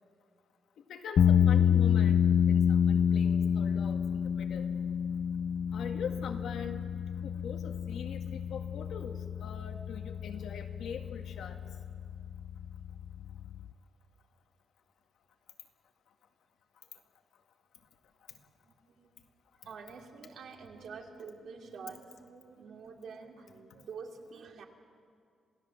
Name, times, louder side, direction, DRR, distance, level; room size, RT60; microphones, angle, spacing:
voice 1, 0.9-4.8 5.7-6.8 7.2-11.6, left 6 dB, 80° left, 4 dB, 2.0 m, -42 dB
sound 1, 1.2-13.7, left 8 dB, 60° left, 0.6 m, -29 dB
voice 2, 18.6-19.1 19.6-24.6, right 5 dB, 70° right, 2 dB, 2.5 m, -47 dB
27.5 x 17.0 x 7.3 m, 2.2 s
wide cardioid pair, 150°, 0 cm